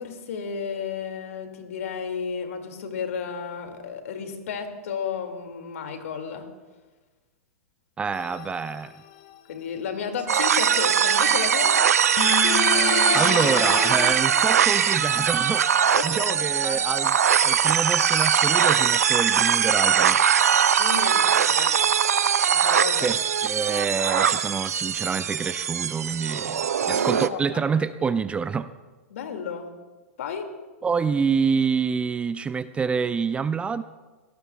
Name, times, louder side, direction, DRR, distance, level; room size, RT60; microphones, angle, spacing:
voice 1, 0.0-6.5 9.5-11.8 15.9-16.8 20.8-21.8 22.5-23.2 26.9-27.6 29.1-29.7 30.2-30.5, left 6 dB, 70° left, 5 dB, 2.3 m, -33 dB
voice 2, 8.0-8.9 13.1-15.7 16.0-17.1 17.4-20.2 23.0-28.7 30.8-33.8, right 5 dB, 15° right, 14 dB, 0.4 m, -27 dB
sound 1, 8.1-8.8 12.2-14.1, left 10 dB, 50° left, 1.5 m, -28 dB
sound 2, 10.3-27.3, right 8 dB, 85° right, 0.6 m, -21 dB
23.0 x 18.0 x 2.3 m, 1.3 s
hypercardioid pair, 120°, 8 cm